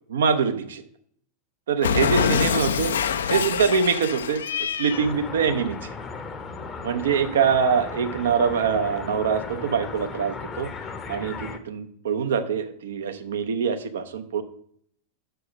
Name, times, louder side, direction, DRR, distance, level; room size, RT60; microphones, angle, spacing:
voice 1, 0.1-0.8 1.7-2.9 3.3-5.9 6.8-10.7 11.1-14.4, right 6 dB, 60° right, 9 dB, 0.7 m, -24 dB
Cat, 1.8-5.1, left 7 dB, 65° left, 0.4 m, -25 dB
sound 1, 4.9-11.6, left 4 dB, 20° left, 0.7 m, -36 dB
6.4 x 4.6 x 6.1 m, 0.65 s
figure-of-eight pair, 90°, 0 cm